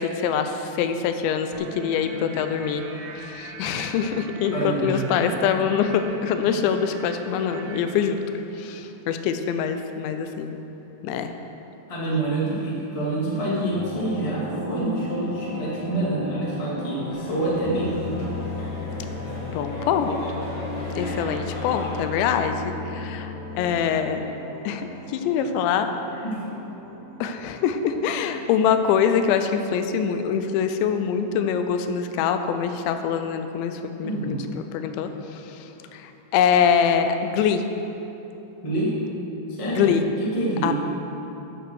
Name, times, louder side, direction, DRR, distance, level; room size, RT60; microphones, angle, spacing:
voice 1, 0.0-2.8 3.2-8.2 8.6-10.6 11.0-11.3 19.5-20.5 21.0-24.3 24.6-25.9 26.1-26.2 27.2-37.6 39.7-40.1 40.6-40.7, left 7 dB, 85° left, 8 dB, 2.9 m, -24 dB
sound 1, 1.5-8.2, right 4 dB, 90° right, 1.9 m, -39 dB
voice 2, 4.5-5.3 11.9-18.0 26.2-26.5 34.0-34.5 38.6-38.9 39.5-39.9 40.2-40.7, right 1 dB, 35° left, -7 dB, 0.5 m, -27 dB
sound 2, 13.7-30.4, left 2 dB, 50° right, 2.2 m, -36 dB
sound 3, 17.1-22.1, left 1 dB, 70° left, 4.3 m, -36 dB
9.5 x 7.8 x 6.3 m, 3.0 s
omnidirectional pair, 5.1 m